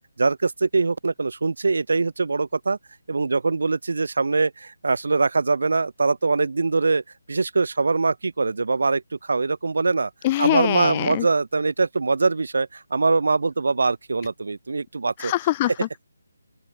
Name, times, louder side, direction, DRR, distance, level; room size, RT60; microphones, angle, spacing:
voice 1, 0.2-2.8 3.1-7.0 7.3-10.1 10.4-15.3, right 3 dB, 70° right, 5.7 m, -23 dB
voice 2, 10.2-11.3 15.2-16.0, left 15 dB, 20° left, 0.6 m, -23 dB
open air
hypercardioid pair, 165°, 0 cm